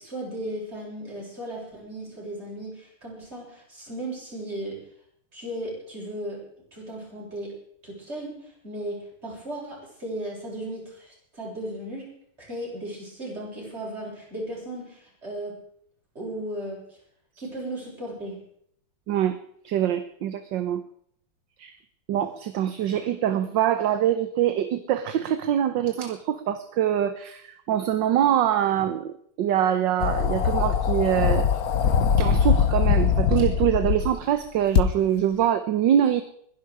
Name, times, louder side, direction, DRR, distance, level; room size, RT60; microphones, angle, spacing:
voice 1, 0.0-4.8 5.3-6.4 6.7-7.6 7.8-12.1 12.4-15.6 16.1-17.0 17.4-18.4, right 1 dB, 30° right, -4 dB, 7.8 m, -36 dB
voice 2, 19.1-19.4 19.6-20.8 21.6-21.7 22.1-31.5 32.2-36.2, right 10 dB, 65° right, 11 dB, 1.4 m, -24 dB
sound 1, 30.0-34.1 34.8-34.9, left 7 dB, 55° left, 1.2 m, -22 dB
21.5 x 11.5 x 4.9 m, 0.65 s
omnidirectional pair, 2.3 m